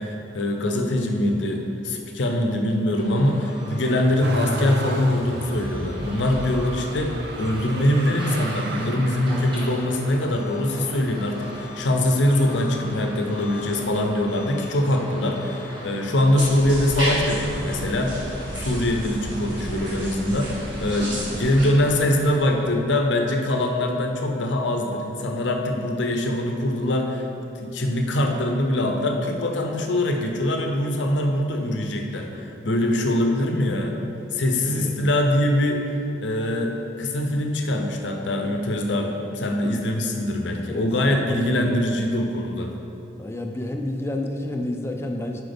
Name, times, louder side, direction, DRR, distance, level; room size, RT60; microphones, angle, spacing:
voice 1, 0.0-18.2 18.5-20.5 20.8-27.2 27.6-34.0 34.3-35.8 36.2-42.7, left 1 dB, 75° left, 3 dB, 0.7 m, -23 dB
sound 1, 2.9-22.8, equal, 25° right, 1.1 m, -39 dB
Motor vehicle (road), 4.2-13.3 13.9-14.7 15.0-16.1 17.1-17.2, right 2 dB, 60° right, 0.5 m, -35 dB
sound 2, 16.4-21.7, equal, 85° right, 1.5 m, -32 dB
voice 2, 34.7-35.1 40.7-41.8 43.2-45.5, left 1 dB, 15° left, 3 dB, 0.4 m, -30 dB
7.7 x 4.7 x 3.5 m, 2.8 s
head